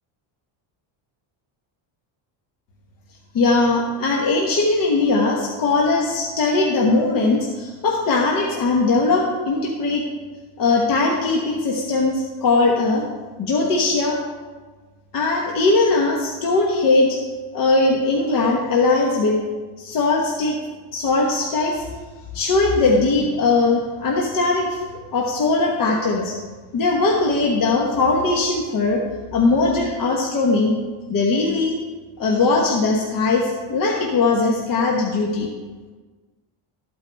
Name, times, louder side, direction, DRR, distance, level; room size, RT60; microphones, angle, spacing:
voice 1, 3.3-10.0 10.6-13.0 13.4-14.2 15.1-17.2 17.5-19.4 19.8-20.6 20.9-21.8 22.3-26.3 26.7-29.0 29.3-30.7 31.1-31.8 32.2-35.5, left 3 dB, 45° left, -2 dB, 1.1 m, -20 dB
13.5 x 8.5 x 3.4 m, 1.4 s
cardioid pair, 175°, 48 cm